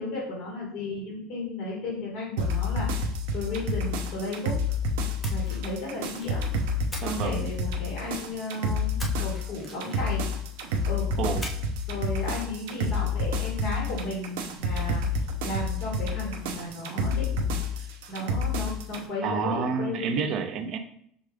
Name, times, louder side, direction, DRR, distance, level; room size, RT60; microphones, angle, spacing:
voice 1, 0.0-2.9 3.3-4.5 5.3-6.4 7.0-10.3 10.9-11.1 11.9-15.0 15.4-20.0, left 2 dB, 40° left, -3 dB, 1.8 m, -34 dB
sound 1, 2.4-19.0, left 2 dB, 85° right, 0.6 m, -29 dB
Splash splatter, 5.2-6.4 6.9-8.1 9.0-10.3 11.4-11.9 12.2-12.4, left 1 dB, 10° left, 0.6 m, -43 dB
voice 2, 7.0-7.5 11.2-11.5 14.8-15.0 19.2-20.8, right 5 dB, 40° right, 7 dB, 0.5 m, -29 dB
6.0 x 2.4 x 3.3 m, 0.67 s
cardioid pair, 170°, 0 cm